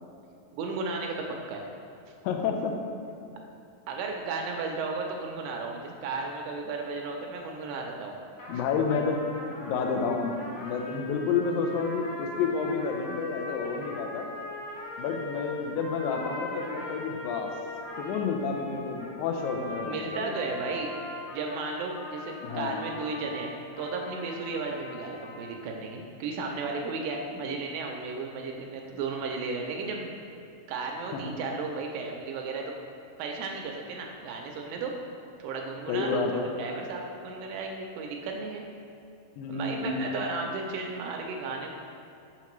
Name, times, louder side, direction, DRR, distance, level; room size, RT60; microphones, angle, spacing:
voice 1, 0.5-1.6 3.9-8.1 8.5-8.6 19.8-20.9 21.3-30.1 30.7-32.7 33.2-34.9 35.4-38.6 39.5-41.7, right 4 dB, 85° right, 1 dB, 2.3 m, -34 dB
voice 2, 2.2-2.7 3.3-3.4 8.5-9.2 9.6-14.3 15.0-17.5 18.0-20.3 22.4-22.8 31.1-31.3 35.9-36.5 39.4-40.0, left 5 dB, 85° left, 3 dB, 1.7 m, -30 dB
sound 1, 8.4-25.5, left 2 dB, 70° left, 1.4 m, -41 dB
5.8 x 5.7 x 3.0 m, 2.7 s
omnidirectional pair, 4.0 m